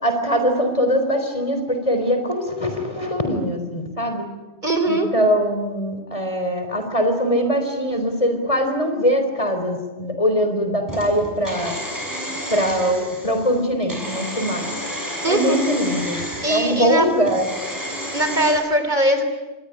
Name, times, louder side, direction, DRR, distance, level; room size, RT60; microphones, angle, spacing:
voice 1, 0.0-4.2 4.9-11.8 12.5-14.7 15.3-17.5, equal, 30° left, 6 dB, 4.0 m, -22 dB
voice 2, 4.6-5.1 15.2-15.6 16.4-17.1 18.1-19.2, right 1 dB, 40° right, 8 dB, 3.6 m, -20 dB
sound 1, 10.9-18.5, equal, 15° right, 6.8 m, -31 dB
26.5 x 21.0 x 10.0 m, 1.2 s
omnidirectional pair, 1.2 m